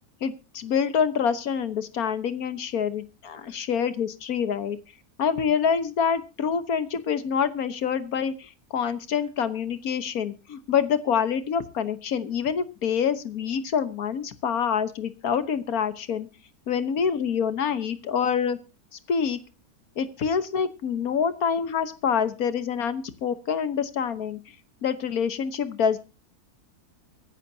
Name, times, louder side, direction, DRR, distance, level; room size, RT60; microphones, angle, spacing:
voice 1, 0.2-4.8 5.2-16.3 16.7-18.6 19.1-19.4 20.0-24.4 24.8-26.0, left 7 dB, 70° left, 12 dB, 1.6 m, -26 dB
24.0 x 11.0 x 2.8 m, 0.30 s
omnidirectional pair, 1.6 m